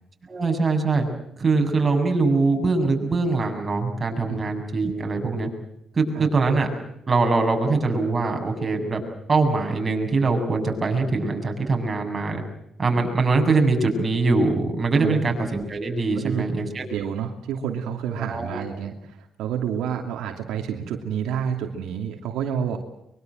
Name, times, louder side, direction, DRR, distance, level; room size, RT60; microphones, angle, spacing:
voice 1, 0.3-1.1 1.4-5.5 5.9-6.7 7.1-9.0 9.3-12.4 12.8-16.8 18.2-18.6, right 3 dB, 30° right, 4 dB, 7.6 m, -22 dB
voice 2, 15.0-15.3 16.1-16.4 16.8-22.8, right 8 dB, 85° right, 4 dB, 2.7 m, -29 dB
24.0 x 23.5 x 7.9 m, 0.77 s
cardioid pair, 90°, 0 cm